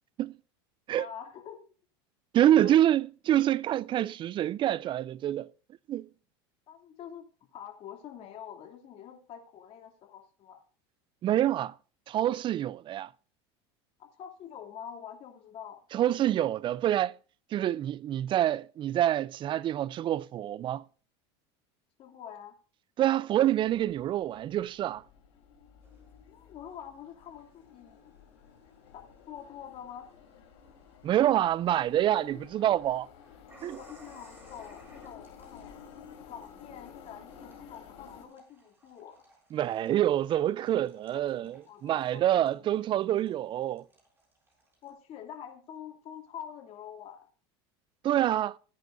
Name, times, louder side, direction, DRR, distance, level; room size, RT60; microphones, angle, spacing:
voice 1, 1.0-1.6 2.4-2.7 6.7-7.2 7.5-10.6 14.0-15.8 22.0-22.5 26.3-28.1 28.9-29.0 29.3-30.1 32.1-32.4 33.7-39.2 41.3-43.0 44.8-47.3, left 9 dB, 45° left, 2.8 m, -46 dB
voice 2, 2.3-5.5 5.9-6.1 11.2-11.7 12.1-13.1 15.9-17.1 17.5-20.8 23.0-25.0 31.0-33.1 33.6-33.8 39.5-43.8 48.0-48.6, right 12 dB, 35° right, 0.4 m, -26 dB
sound 1, 23.4-38.2, left 7 dB, 75° left, 3.6 m, -53 dB
sound 2, 25.8-44.9, right 2 dB, 15° right, 6.2 m, -62 dB
19.0 x 9.4 x 2.6 m
supercardioid pair, 105°, 14 cm